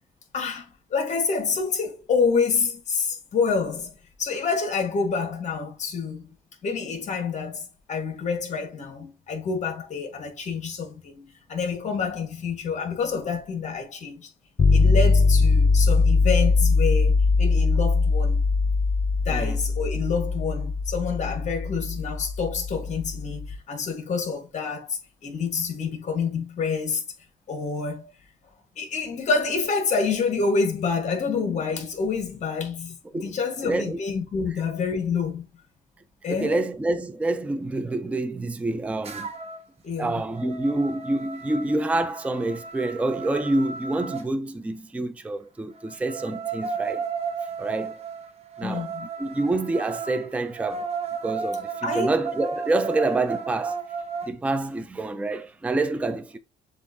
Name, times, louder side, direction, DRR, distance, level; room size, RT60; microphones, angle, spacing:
voice 1, 0.3-6.3 6.6-14.3 14.7-18.4 19.2-27.0 27.5-28.1 28.8-35.4 36.2-36.6 39.8-40.2 48.6-49.1 51.8-52.1, left 5 dB, 45° left, 1.3 m, -28 dB
sound 1, 14.6-23.6, left 4 dB, 25° left, 0.6 m, -21 dB
voice 2, 19.3-19.6 33.1-33.3 33.6-34.0 36.3-39.3 40.0-47.1 47.6-48.0 48.6-48.9 49.2-50.9 51.2-53.8 54.3-56.4, right 2 dB, 10° right, 0.4 m, -27 dB
sound 2, 39.0-39.7 40.1-44.3 45.7-54.3, right 5 dB, 40° right, 0.9 m, -34 dB
7.0 x 2.5 x 2.6 m
cardioid pair, 110°, 17 cm